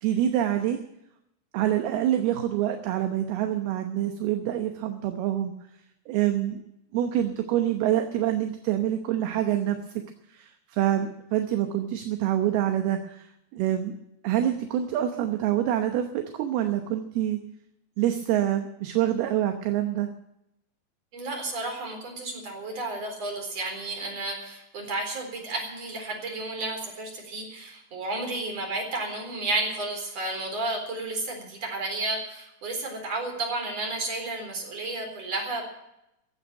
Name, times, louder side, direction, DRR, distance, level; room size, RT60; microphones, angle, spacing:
voice 1, 0.0-0.8 1.5-5.5 6.1-6.6 6.9-9.8 10.3-13.3 13.5-14.0 14.2-17.4 18.0-20.1, right 11 dB, 75° right, 6 dB, 2.7 m, -26 dB
voice 2, 21.1-35.6, right 2 dB, 35° right, 2 dB, 4.9 m, -32 dB
16.0 x 9.1 x 9.0 m, 0.83 s
omnidirectional pair, 5.0 m